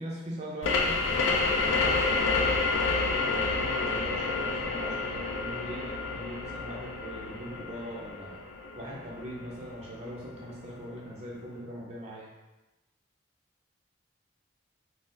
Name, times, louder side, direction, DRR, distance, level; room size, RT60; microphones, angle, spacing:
voice 1, 0.0-2.6 3.1-8.4 8.8-12.3, equal, 35° right, -4 dB, 0.6 m, -41 dB
sound 1, 0.6-10.0, left 3 dB, 70° left, 0.3 m, -29 dB
4.0 x 2.1 x 2.5 m, 1.0 s
head